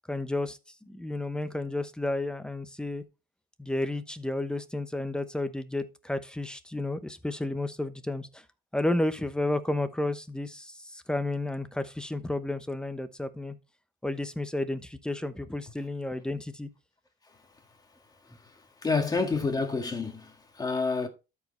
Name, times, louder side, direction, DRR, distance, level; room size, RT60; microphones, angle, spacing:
voice 1, 0.1-0.6 0.9-3.0 3.6-8.4 8.7-13.6 14.0-16.7, left 2 dB, 5° left, 0.9 m, -32 dB
voice 2, 18.8-21.1, left 4 dB, 20° left, 1.8 m, -28 dB
12.5 x 4.9 x 3.2 m
cardioid pair, 110°, 17 cm